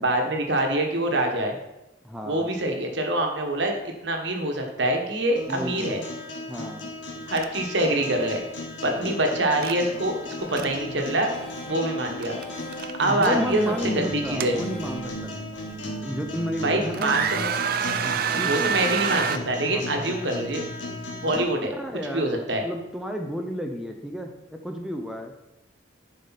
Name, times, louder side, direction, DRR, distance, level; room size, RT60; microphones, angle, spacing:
voice 1, 0.0-1.6 2.2-6.0 7.3-8.4 8.8-11.3 11.7-12.4 13.0-13.6 13.9-14.6 16.6-17.5 18.4-20.6 21.2-21.7 22.1-22.6, right 1 dB, 65° right, 3 dB, 1.3 m, -25 dB
voice 2, 2.0-2.5 5.5-6.0 6.5-6.9 8.9-9.2 13.0-15.5 16.0-17.2 18.0-18.8 19.6-19.8 21.2-25.3, equal, ahead, 3 dB, 0.6 m, -32 dB
sound 1, 5.4-21.4, left 1 dB, 75° left, 1.5 m, -36 dB
sound 2, 7.4-7.5 7.8-8.0 9.6-9.8 10.3-10.7 12.2-12.4 12.7-13.3 14.1-15.1 15.7-15.8 16.4-16.7 16.9-19.4, right 7 dB, 50° right, 0.4 m, -27 dB
sound 3, 10.4-16.2 16.6-17.3 17.7-18.4 18.8-19.5 19.9-20.5 21.0-21.5, left 1 dB, 30° left, 1.5 m, -43 dB
10.0 x 5.1 x 4.1 m, 0.94 s
head